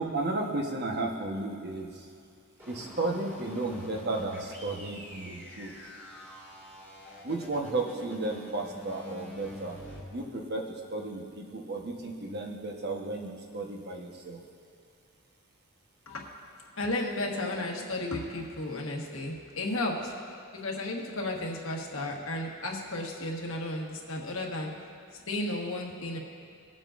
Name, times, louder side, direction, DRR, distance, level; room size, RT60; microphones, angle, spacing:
voice 1, 0.0-2.1 2.7-5.7 7.2-9.8 10.1-14.4, right 2 dB, 50° right, 1 dB, 1.1 m, -33 dB
sound 1, 2.6-10.0, equal, 10° right, 2.0 m, -46 dB
voice 2, 16.8-20.1 20.5-24.7 25.3-26.2, left 2 dB, 70° left, 0 dB, 1.4 m, -33 dB
21.5 x 7.5 x 2.5 m, 2.3 s
head